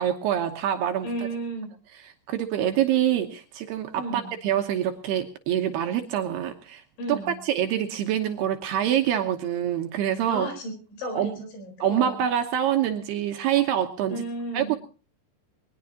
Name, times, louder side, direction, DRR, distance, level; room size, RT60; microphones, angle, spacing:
voice 1, 0.0-1.1 2.3-6.8 7.1-10.5 11.1-11.3 11.8-14.2 14.5-14.8, right 10 dB, 70° right, 5 dB, 2.7 m, -25 dB
voice 2, 1.0-1.7 3.9-4.3 7.0-7.3 10.3-12.2 14.1-14.7, right 1 dB, 75° left, 5 dB, 6.7 m, -33 dB
21.0 x 20.0 x 2.9 m, 0.36 s
omnidirectional pair, 5.4 m